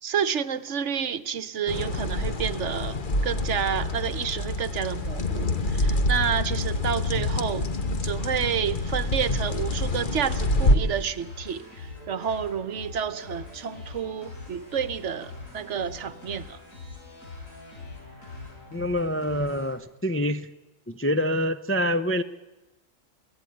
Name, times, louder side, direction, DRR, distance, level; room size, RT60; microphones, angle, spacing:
voice 1, 0.0-7.7 8.0-16.6, right 8 dB, 65° right, 1.2 m, -30 dB
sound 1, 1.7-10.8, left 1 dB, 40° left, 1.3 m, -26 dB
sound 2, 7.7-19.7, left 3 dB, 90° left, 6.3 m, -43 dB
voice 2, 18.7-20.5 20.9-22.2, equal, 15° left, 0.4 m, -26 dB
22.5 x 16.0 x 9.3 m
omnidirectional pair, 1.4 m